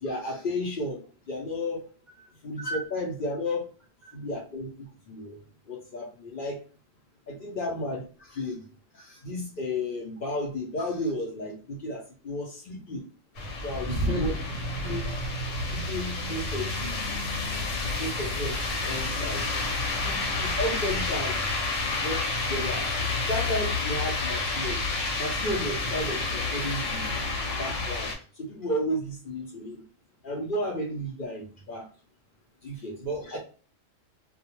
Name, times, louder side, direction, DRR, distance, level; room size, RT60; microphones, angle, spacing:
voice 1, 0.0-1.8 2.4-3.7 4.1-5.4 5.7-6.6 7.3-8.6 8.9-13.1 13.6-14.3 14.8-15.1 15.7-17.1 18.0-18.6 18.8-21.4 22.0-27.1 27.6-29.8 30.2-31.9 32.6-33.0 33.3-33.4, left 1 dB, 55° left, -1 dB, 0.6 m, -33 dB
sound 1, 13.4-28.1, left 3 dB, 80° left, 1.1 m, -30 dB
voice 2, 13.9-14.4 21.9-22.0 32.7-33.4, right 1 dB, 60° right, -2 dB, 0.4 m, -32 dB
2.3 x 2.1 x 2.9 m, 0.40 s
omnidirectional pair, 1.3 m